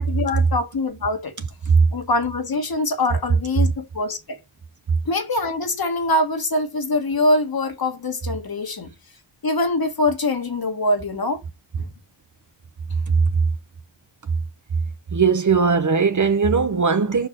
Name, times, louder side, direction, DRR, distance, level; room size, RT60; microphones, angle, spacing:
voice 1, 0.0-1.3 1.9-4.4 5.0-8.9 9.4-11.4 11.8-11.9, left 2 dB, 45° left, 1.7 m, -23 dB
voice 2, 15.1-17.3, right 5 dB, 35° right, 0.9 m, -19 dB
5.8 x 4.7 x 5.2 m
cardioid pair, 75°, 49 cm